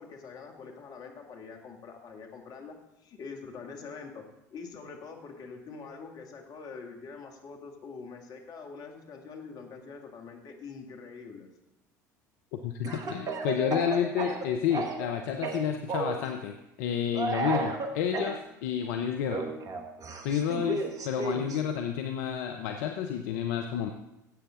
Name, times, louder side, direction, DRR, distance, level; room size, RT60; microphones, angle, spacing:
voice 1, 0.0-4.2 4.5-11.5, left 5 dB, 45° left, 2 dB, 2.2 m, -44 dB
voice 2, 12.5-19.4 20.2-23.9, left 8 dB, 65° left, 5 dB, 0.8 m, -30 dB
Speech / Cough, 12.8-15.1 15.4-16.2 17.1-18.4 19.3-21.6, right 3 dB, 40° right, 1.6 m, -33 dB
15.5 x 8.2 x 3.8 m, 0.90 s
hypercardioid pair, 70°, 9 cm